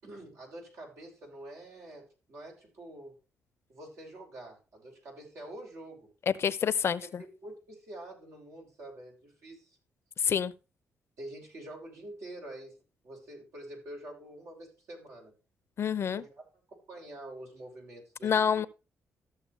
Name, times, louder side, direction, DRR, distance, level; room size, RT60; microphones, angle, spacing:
voice 1, 0.0-3.2 3.7-6.1 7.0-9.8 11.2-12.8 13.0-15.3 16.1-16.4 16.9-18.7, right 1 dB, 70° right, 6.3 m, -46 dB
voice 2, 6.3-7.2 10.2-10.5 15.8-16.2 18.2-18.7, left 7 dB, 55° left, 0.7 m, -27 dB
14.0 x 7.0 x 3.3 m
cardioid pair, 70°, 5 cm